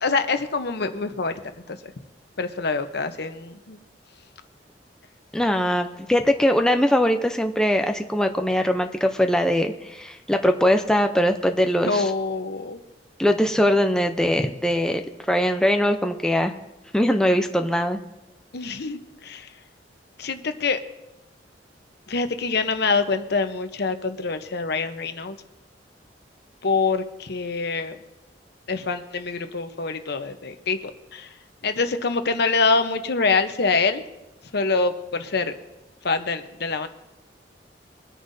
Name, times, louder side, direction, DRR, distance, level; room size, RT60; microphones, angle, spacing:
voice 1, 0.0-1.4 1.7-1.8 2.4-3.8 11.8-12.8 18.5-19.5 20.2-20.8 22.1-25.4 26.6-28.0 28.7-31.3 31.6-34.0 34.5-35.5 36.0-36.9, left 4 dB, 65° left, 8 dB, 0.9 m, -25 dB
voice 2, 5.3-12.1 13.2-16.5 16.9-18.0, equal, 5° left, 5 dB, 0.6 m, -21 dB
23.5 x 10.0 x 2.7 m, 1.0 s
head